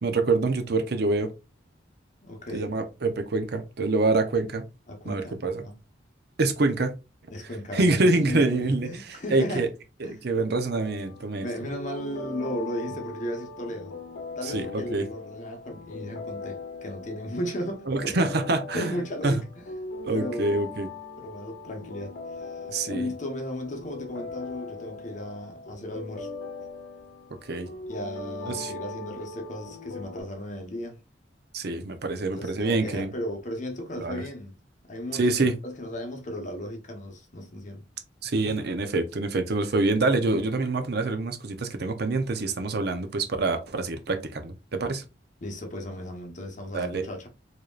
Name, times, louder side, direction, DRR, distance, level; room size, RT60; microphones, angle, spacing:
voice 1, 0.0-1.3 2.5-4.6 5.0-5.6 6.4-7.0 7.7-9.7 10.0-11.5 14.4-15.0 17.9-18.9 19.2-19.4 20.0-20.9 22.7-23.1 27.5-27.7 28.5-28.7 31.5-33.1 34.0-34.2 35.1-35.5 38.2-45.1 46.7-47.1, right 3 dB, 60° right, 0.6 m, -26 dB
voice 2, 2.2-2.7 4.9-5.7 7.3-9.7 10.0-10.2 11.4-13.9 14.4-18.3 18.7-19.6 20.1-20.5 21.2-22.6 22.9-26.3 27.9-31.0 32.2-34.5 34.9-37.8 45.4-47.3, equal, 40° left, 1.1 m, -35 dB
sound 1, 10.7-30.2, left 3 dB, 85° left, 0.8 m, -40 dB
4.8 x 2.9 x 2.4 m
head